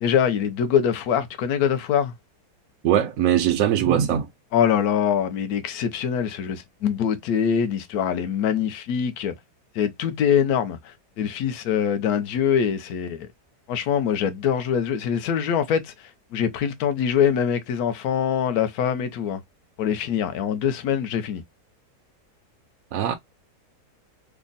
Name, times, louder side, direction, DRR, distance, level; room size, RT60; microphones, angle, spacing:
voice 1, 0.0-2.1 4.5-9.3 9.7-13.3 13.7-19.4 19.8-21.4, left 8 dB, 70° left, 1.1 m, -24 dB
voice 2, 2.8-4.3 22.9-23.1, right 10 dB, 70° right, 0.9 m, -21 dB
3.4 x 2.1 x 3.8 m
omnidirectional pair, 1.8 m